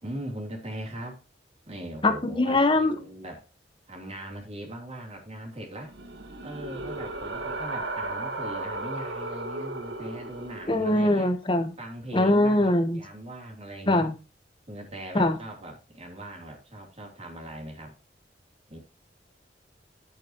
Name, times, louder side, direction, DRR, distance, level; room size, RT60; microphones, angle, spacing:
voice 1, 0.0-1.2 1.7-3.4 3.9-5.9 6.4-11.3 11.8-14.1 14.7-17.9 18.7-18.8, right 1 dB, 35° right, 3.1 m, -40 dB
voice 2, 2.0-2.9 10.7-11.7 12.1-13.0 13.9-14.1 15.1-15.4, left 1 dB, 30° left, 1.2 m, -22 dB
sound 1, 5.8-10.9, right 2 dB, 90° right, 1.9 m, -35 dB
10.5 x 8.1 x 3.0 m
head